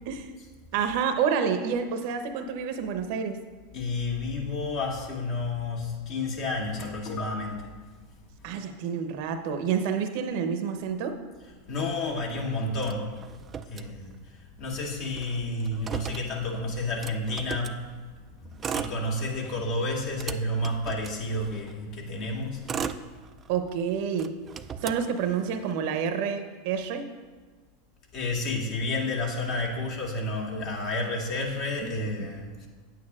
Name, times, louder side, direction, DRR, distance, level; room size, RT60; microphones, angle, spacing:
voice 1, 0.7-3.4 8.4-11.1 23.5-24.3 24.8-27.1 32.2-32.3, right 7 dB, 60° right, 7 dB, 0.8 m, -28 dB
voice 2, 3.7-7.7 11.4-13.1 13.4-17.8 18.4-22.8 24.8-24.9 28.1-32.7, left 2 dB, 55° left, -1 dB, 1.9 m, -31 dB
Motor vehicle (road), 12.8-14.4 14.7-14.8 15.0-17.8 18.5-19.5 19.9-21.7 22.3-23.7 24.1-25.7, right 7 dB, 30° right, 0.4 m, -37 dB
9.2 x 8.5 x 2.4 m, 1.4 s
hypercardioid pair, 105°, 0 cm